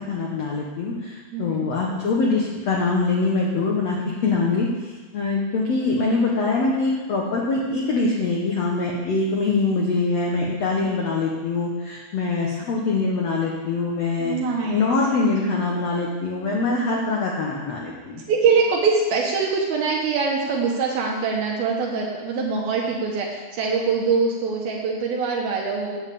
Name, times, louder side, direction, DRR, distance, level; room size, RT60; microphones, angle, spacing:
voice 1, 0.0-14.4 14.7-18.2, left 3 dB, 65° left, -2 dB, 1.7 m, -23 dB
voice 2, 1.3-1.7 14.2-15.0 15.4-15.5 18.1-26.0, right 5 dB, 75° right, -2 dB, 2.9 m, -23 dB
8.9 x 7.3 x 8.5 m, 1.3 s
omnidirectional pair, 4.5 m